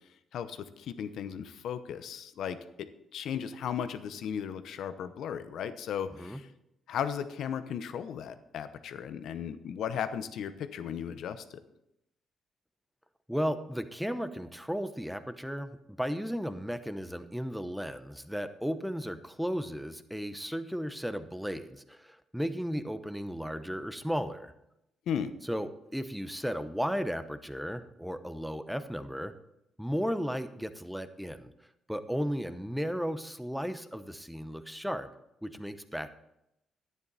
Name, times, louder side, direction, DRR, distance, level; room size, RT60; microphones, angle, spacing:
voice 1, 0.3-2.9 3.1-6.5 6.9-11.6 25.1-25.3, left 8 dB, 75° left, 11 dB, 0.8 m, -36 dB
voice 2, 13.3-24.5 25.5-29.3 29.8-31.5 31.9-35.1 35.4-36.1, equal, ahead, 10 dB, 0.8 m, -35 dB
11.0 x 9.8 x 4.1 m, 0.85 s
cardioid pair, 90°, 0 cm